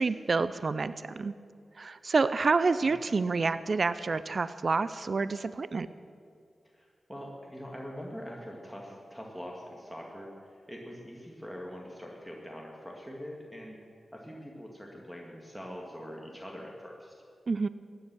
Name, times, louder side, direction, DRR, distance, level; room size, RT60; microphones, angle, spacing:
voice 1, 0.0-1.3 1.8-5.9 17.5-17.7, right 4 dB, 55° right, 14 dB, 0.4 m, -28 dB
voice 2, 6.7-10.3 10.7-13.8 14.1-17.1, equal, ahead, -1 dB, 2.1 m, -43 dB
15.0 x 9.9 x 6.2 m, 2.4 s
cardioid pair, 55°, 0 cm